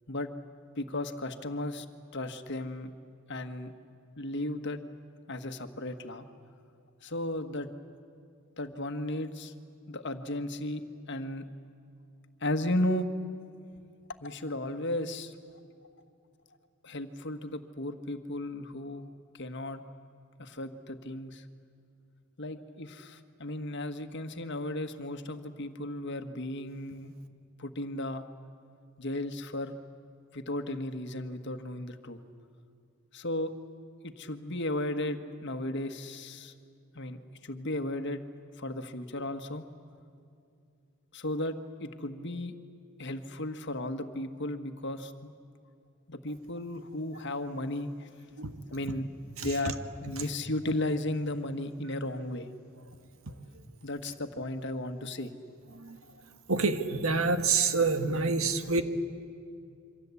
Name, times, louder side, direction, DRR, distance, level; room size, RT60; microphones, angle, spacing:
voice 1, 0.8-1.8 2.1-2.9 3.3-3.7 4.2-4.8 5.3-6.2 7.0-7.7 8.6-9.5 9.9-11.4 12.4-13.1 14.2-15.3 16.8-19.1 19.3-19.8 20.4-21.4 22.4-27.1 27.6-28.3 29.0-29.7 30.3-32.2 33.1-33.5 34.0-36.5 36.9-38.2 38.6-39.6 41.1-42.5 43.0-45.3 46.1-48.1 48.7-49.1 49.4-52.5 53.8-55.3, left 1 dB, 55° left, 8 dB, 1.5 m, -35 dB
voice 2, 49.4-49.7 50.2-50.3 53.3-53.4 55.7-56.0 56.5-58.8, right 4 dB, 80° right, 8 dB, 1.7 m, -28 dB
27.5 x 24.5 x 8.4 m, 2.5 s
head